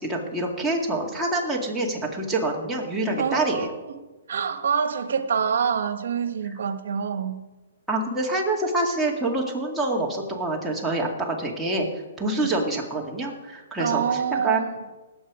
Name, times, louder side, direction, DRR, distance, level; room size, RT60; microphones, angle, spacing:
voice 1, 0.0-3.7 7.9-11.9 12.2-14.0 14.4-14.7, right 2 dB, 5° right, 2.1 m, -26 dB
voice 2, 3.2-7.4 12.4-12.5 13.8-14.8, right 7 dB, 70° right, 1.2 m, -26 dB
19.0 x 7.9 x 4.9 m
hypercardioid pair, 150°, 0 cm